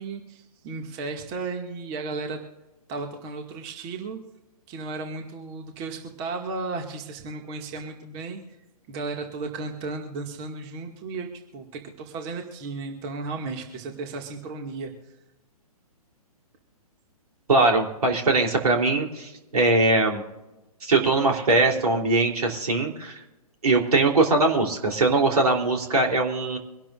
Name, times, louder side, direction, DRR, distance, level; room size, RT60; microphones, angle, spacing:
voice 1, 0.0-2.4 2.9-4.2 4.7-8.4 8.9-15.1, right 3 dB, 30° right, 4 dB, 2.0 m, -34 dB
voice 2, 17.5-20.2 20.8-23.2 23.6-26.6, right 2 dB, 70° right, 2 dB, 3.3 m, -21 dB
24.5 x 12.0 x 2.5 m, 1.0 s
figure-of-eight pair, 130°, 20 cm